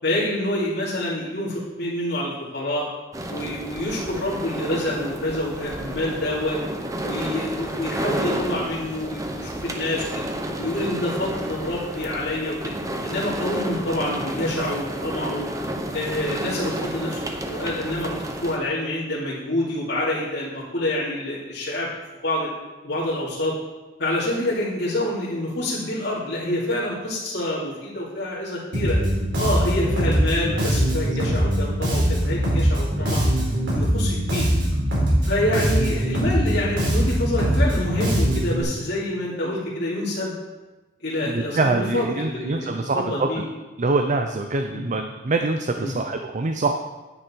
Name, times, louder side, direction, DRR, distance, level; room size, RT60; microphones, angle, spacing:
voice 1, 0.0-2.9 3.3-6.6 7.0-10.0 10.6-12.7 13.0-15.5 15.9-21.9 22.2-22.5 22.8-23.6 24.0-29.0 29.4-33.2 33.7-34.5 35.2-40.4 41.0-43.5 44.7-44.8 45.8-45.9, left 1 dB, 65° left, -9 dB, 2.8 m, -27 dB
sound 1, 3.1-18.6, right 1 dB, 20° right, 1.0 m, -31 dB
Bass guitar, 28.7-38.6, equal, 70° right, 4.3 m, -22 dB
voice 2, 41.2-43.5 43.8-46.7, right 3 dB, 40° right, 5 dB, 0.6 m, -24 dB
9.9 x 9.7 x 4.5 m, 1.2 s
head